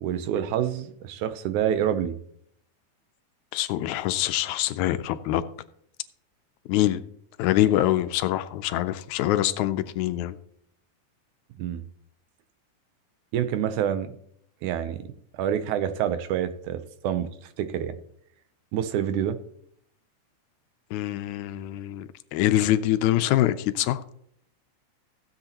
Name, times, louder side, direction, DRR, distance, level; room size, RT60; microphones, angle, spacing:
voice 1, 0.0-2.2 11.6-11.8 13.3-14.1 14.6-15.0 15.3-16.8 17.0-17.3 17.6-17.9 18.7-19.4, right 10 dB, 80° right, 2.2 m, -27 dB
voice 2, 3.5-5.4 6.7-7.0 7.4-10.4 20.9-24.0, left 13 dB, 80° left, 1.9 m, -24 dB
16.0 x 8.0 x 2.9 m
omnidirectional pair, 3.5 m